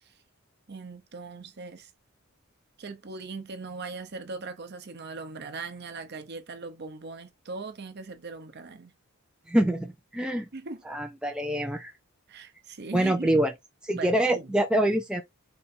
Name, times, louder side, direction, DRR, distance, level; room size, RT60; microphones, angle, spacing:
voice 1, 0.7-1.9 2.8-8.9 10.5-10.8 12.3-13.4 13.9-14.6, right 3 dB, 50° right, 0.7 m, -40 dB
voice 2, 9.5-10.5 10.9-11.9 12.9-13.5 13.8-15.2, right 1 dB, 5° right, 0.3 m, -25 dB
3.8 x 2.6 x 4.1 m
head